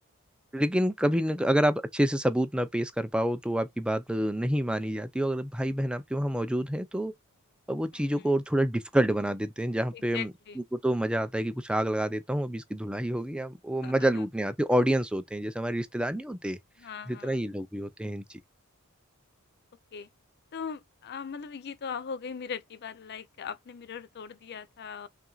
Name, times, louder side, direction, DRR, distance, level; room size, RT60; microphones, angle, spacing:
voice 1, 0.5-7.1 7.7-10.3 10.6-16.6 17.1-18.4, right 1 dB, 5° right, 0.4 m, -28 dB
voice 2, 7.9-8.3 9.9-10.6 13.8-14.2 16.8-17.4 19.9-20.1 20.5-25.1, left 6 dB, 50° left, 0.5 m, -40 dB
5.8 x 2.6 x 2.3 m
head